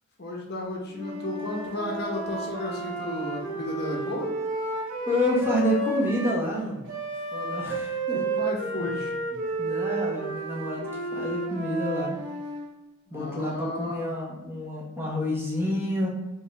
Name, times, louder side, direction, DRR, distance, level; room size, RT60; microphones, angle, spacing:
voice 1, 0.2-4.3 8.1-9.1 13.1-14.1, left 1 dB, 50° left, -2 dB, 1.0 m, -33 dB
Wind instrument woodwind instrument, 0.9-6.4 6.9-12.7, right 2 dB, 60° right, 1.0 m, -32 dB
voice 2, 5.1-6.8 7.3-8.2 9.3-12.2 13.1-16.1, equal, 10° right, -4 dB, 1.0 m, -28 dB
5.3 x 2.7 x 3.4 m, 1.0 s
head